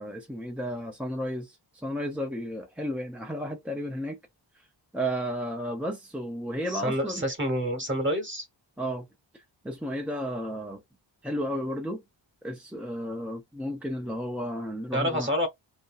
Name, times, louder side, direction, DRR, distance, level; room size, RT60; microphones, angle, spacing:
voice 1, 0.0-4.2 4.9-7.3 8.8-9.1 9.6-10.8 11.2-12.0 12.4-15.3, equal, 5° right, 0.3 m, -33 dB
voice 2, 6.7-8.5 14.9-15.5, equal, 25° right, 1.0 m, -28 dB
2.8 x 2.5 x 2.3 m
wide cardioid pair, 150°, 46 cm